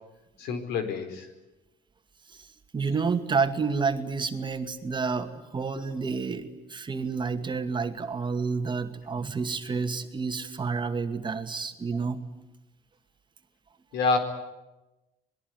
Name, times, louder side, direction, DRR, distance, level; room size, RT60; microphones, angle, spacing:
voice 1, 0.4-1.3 13.9-14.2, left 4 dB, 85° left, 8 dB, 4.7 m, -27 dB
voice 2, 2.7-12.2, right 5 dB, 30° right, 6 dB, 2.3 m, -29 dB
26.5 x 21.0 x 9.6 m, 1.0 s
cardioid pair, 110°, 17 cm